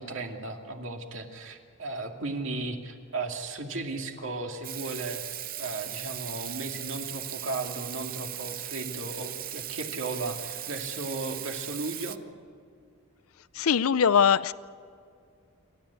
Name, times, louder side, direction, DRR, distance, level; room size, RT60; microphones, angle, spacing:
voice 1, 0.0-12.2, right 2 dB, 60° right, 3 dB, 2.4 m, -35 dB
Water tap faucet / Sink (filling or washing), 4.6-12.2, right 12 dB, 40° right, 0.7 m, -38 dB
voice 2, 13.6-14.5, left 7 dB, 80° left, 17 dB, 0.5 m, -21 dB
29.0 x 13.0 x 8.3 m, 2.3 s
head